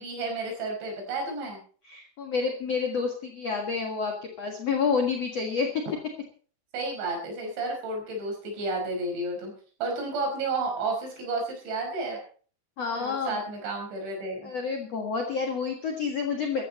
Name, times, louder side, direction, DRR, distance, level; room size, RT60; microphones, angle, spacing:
voice 1, 0.0-1.6 6.7-9.5 9.8-12.2 12.9-14.5, right 2 dB, 65° right, 1 dB, 7.4 m, -31 dB
voice 2, 1.9-5.7 12.8-13.4 14.4-16.6, left 5 dB, 60° left, 2 dB, 1.7 m, -29 dB
17.0 x 14.0 x 4.3 m, 0.42 s
omnidirectional pair, 5.6 m